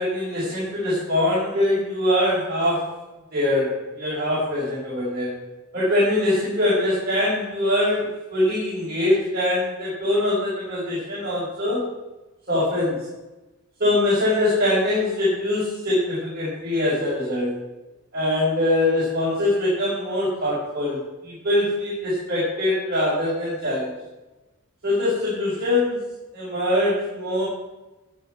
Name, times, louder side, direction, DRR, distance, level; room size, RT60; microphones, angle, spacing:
voice 1, 0.0-2.9 3.3-5.3 5.7-11.9 12.5-13.1 13.8-17.6 18.1-24.0 24.8-26.0 26.3-27.4, left 1 dB, 45° right, -9 dB, 5.5 m, -23 dB
15.0 x 9.6 x 4.7 m, 1.1 s
head